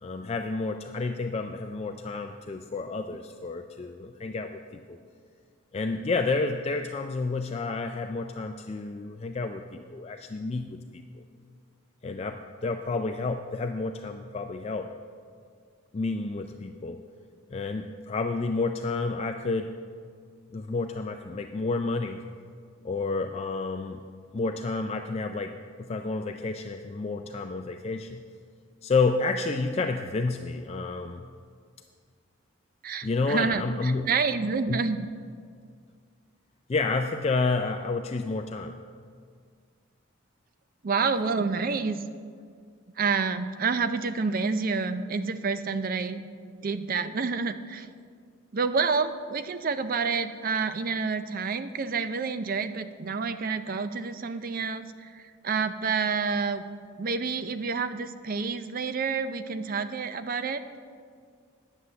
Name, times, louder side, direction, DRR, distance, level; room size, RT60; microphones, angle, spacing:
voice 1, 0.0-5.0 5.7-11.2 12.0-14.9 15.9-17.0 17.5-19.7 20.5-22.3 22.8-24.0 24.3-28.2 28.8-31.2 33.0-34.1 34.7-34.8 36.7-38.8, left 3 dB, 30° left, 5 dB, 0.3 m, -30 dB
voice 2, 32.8-35.1 40.8-42.0 43.0-46.3 46.6-47.9 48.5-56.6 57.0-60.6, right 5 dB, 40° right, 11 dB, 0.5 m, -28 dB
9.7 x 7.9 x 7.0 m, 2.1 s
head